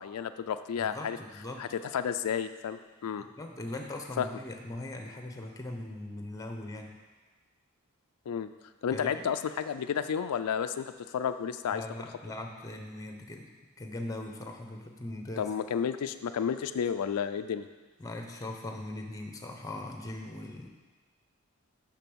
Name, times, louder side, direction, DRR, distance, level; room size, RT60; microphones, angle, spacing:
voice 1, 0.0-1.2 1.6-3.3 4.2-4.3 8.3-8.5 8.8-11.8 15.4-17.7, left 7 dB, 90° left, 10 dB, 0.4 m, -31 dB
voice 2, 0.8-1.6 3.4-7.0 8.9-9.3 11.7-13.5 13.8-15.5 18.0-20.7, left 1 dB, 15° left, 3 dB, 0.8 m, -40 dB
6.7 x 6.0 x 6.2 m, 1.3 s
head